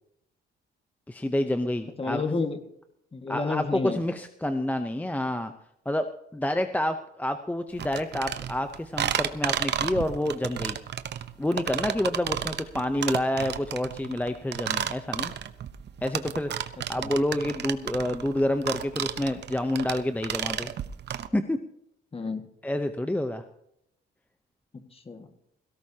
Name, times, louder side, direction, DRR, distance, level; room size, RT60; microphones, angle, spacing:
voice 1, 1.1-2.2 3.3-5.5 5.9-10.8 11.4-15.3 16.0-20.7 21.3-21.6 22.6-23.4, left 1 dB, 10° left, 8 dB, 0.8 m, -28 dB
voice 2, 2.0-2.6 3.1-4.0 17.0-17.1 22.1-22.4 24.9-25.3, left 3 dB, 30° left, 6 dB, 1.8 m, -30 dB
sound 1, 7.8-21.3, right 9 dB, 60° right, 0.9 m, -32 dB
18.0 x 17.0 x 2.9 m, 0.76 s
cardioid pair, 90°, 20 cm